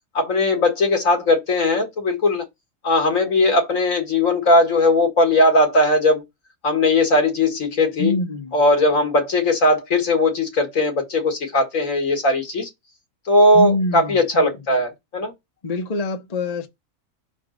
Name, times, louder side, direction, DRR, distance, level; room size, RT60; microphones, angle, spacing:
voice 1, 0.1-2.4 2.8-6.2 6.6-8.1 8.5-12.7 13.3-15.3, left 2 dB, 75° left, 2.1 m, -18 dB
voice 2, 8.0-8.5 13.5-14.5 15.6-16.7, left 2 dB, 35° left, 0.9 m, -25 dB
6.0 x 3.7 x 5.1 m
omnidirectional pair, 1.4 m